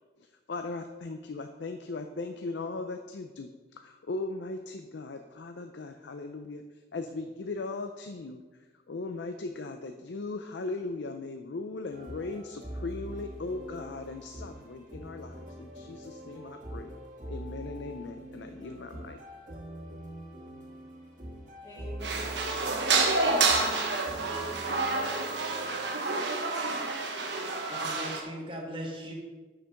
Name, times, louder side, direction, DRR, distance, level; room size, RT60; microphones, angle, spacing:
voice 1, 0.5-6.6 6.9-8.4 8.9-16.9 17.3-19.2, left 3 dB, 75° left, 6 dB, 0.5 m, -38 dB
sound 1, 11.9-25.7, right 1 dB, 45° right, 1.6 m, -44 dB
voice 2, 21.6-22.4 22.6-24.6, left 1 dB, 20° left, -7 dB, 1.2 m, -45 dB
sound 2, 22.0-28.2, right 3 dB, 75° right, 1.1 m, -28 dB
voice 3, 27.7-29.1, equal, 30° right, 1 dB, 1.3 m, -38 dB
6.7 x 6.5 x 5.8 m, 1.3 s
head